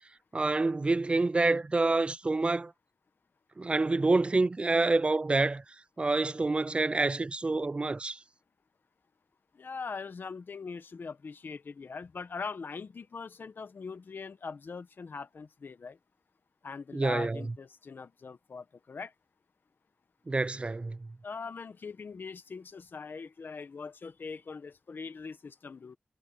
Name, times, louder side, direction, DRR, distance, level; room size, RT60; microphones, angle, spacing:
voice 1, 0.3-2.7 3.6-5.6 6.0-8.2 16.9-17.4 20.3-21.1, right 3 dB, 30° right, 0.3 m, -27 dB
voice 2, 9.5-16.0 16.6-19.1 21.2-26.0, left 5 dB, 75° left, 1.1 m, -41 dB
wide cardioid pair, 85°, 4 cm